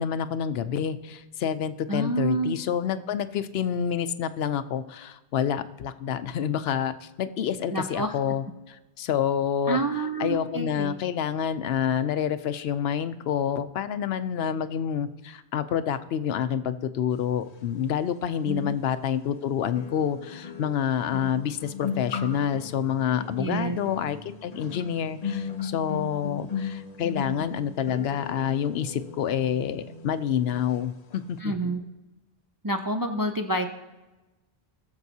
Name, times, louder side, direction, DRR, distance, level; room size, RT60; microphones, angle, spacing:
voice 1, 0.0-9.8 10.2-30.9 31.3-31.7, left 8 dB, 80° left, 12 dB, 0.8 m, -28 dB
voice 2, 1.9-2.6 7.7-8.2 9.7-11.0 18.5-18.8 23.4-23.8 31.4-31.8 32.6-33.7, right 2 dB, 35° right, 4 dB, 0.3 m, -28 dB
sound 1, 18.4-18.5 19.8-30.9 31.1-31.4, left 6 dB, 45° left, 0.7 m, -37 dB
19.5 x 7.1 x 2.8 m, 1.1 s
omnidirectional pair, 1.0 m